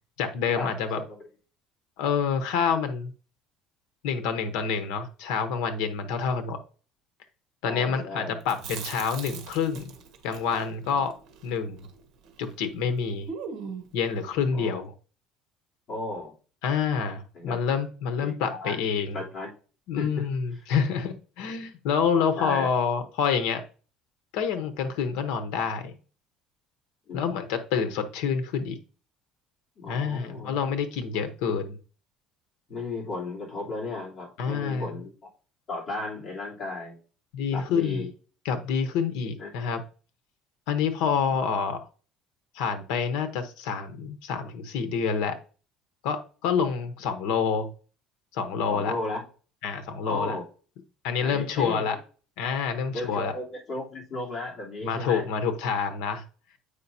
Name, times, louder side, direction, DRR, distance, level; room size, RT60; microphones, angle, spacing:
voice 1, 0.2-1.0 2.0-3.1 4.0-6.6 7.6-10.0 10.2-11.1 11.4-11.8 12.4-13.3 13.9-14.9 16.6-19.2 19.9-23.6 24.3-25.9 27.1-28.8 29.9-31.8 34.4-34.9 37.3-38.1 38.4-39.8 40.7-41.9 42.5-45.4 46.0-47.7 48.3-48.9 49.6-50.4 51.0-52.0 52.4-53.3 54.8-56.2, left 6 dB, 85° left, 9 dB, 0.9 m, -27 dB
voice 2, 7.6-8.4 14.5-14.8 15.9-16.3 17.3-17.6 18.2-19.5 19.9-20.7 22.1-22.7 27.1-27.2 29.8-30.6 31.1-31.2 32.7-35.1 35.7-37.0 37.5-38.1 39.4-39.5 41.3-41.5 48.7-49.2 50.0-50.4 51.2-51.9 52.9-55.2, left 2 dB, 35° left, -5 dB, 3.2 m, -35 dB
Chewing mastication, 8.4-12.6 12.8-12.9 13.3-14.0, right 6 dB, 55° right, 1.4 m, -40 dB
8.3 x 5.1 x 2.7 m, 0.37 s
cardioid pair, 150°, 0 cm